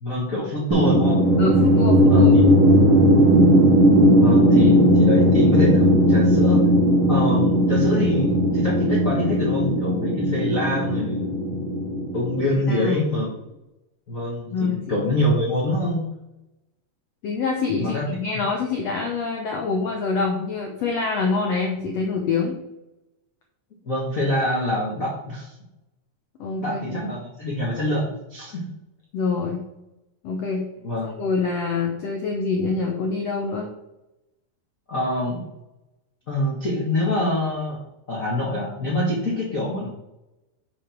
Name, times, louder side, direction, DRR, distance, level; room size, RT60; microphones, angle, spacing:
voice 1, 0.0-1.2 2.1-2.5 4.0-6.7 7.1-11.3 12.1-13.3 14.1-16.0 17.8-18.0 23.8-25.5 26.6-28.6 30.8-31.1 34.9-35.4 36.3-37.8 38.1-39.9, left 1 dB, 50° left, -5 dB, 0.9 m, -25 dB
sound 1, 0.7-12.8, equal, 75° right, 1.3 m, -17 dB
voice 2, 1.4-2.3 12.7-13.1 14.5-15.0 17.2-22.6 26.4-27.1 29.1-29.6 30.2-30.7 31.0-33.7, left 4 dB, 75° left, 1 dB, 1.5 m, -25 dB
6.9 x 5.3 x 4.5 m, 0.92 s
omnidirectional pair, 4.1 m